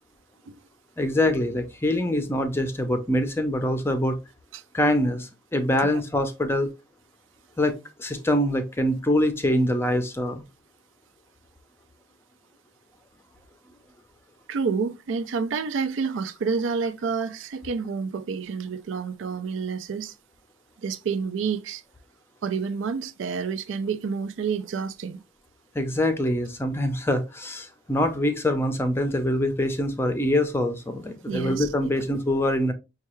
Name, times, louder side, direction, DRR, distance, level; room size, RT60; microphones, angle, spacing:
voice 1, 1.0-4.2 4.7-6.7 7.6-10.4 25.7-32.7, left 1 dB, 10° left, 0.5 m, -24 dB
voice 2, 14.5-20.1 20.8-21.8 22.4-25.2 31.3-31.7, right 5 dB, 85° right, 0.4 m, -29 dB
5.5 x 2.3 x 3.0 m
head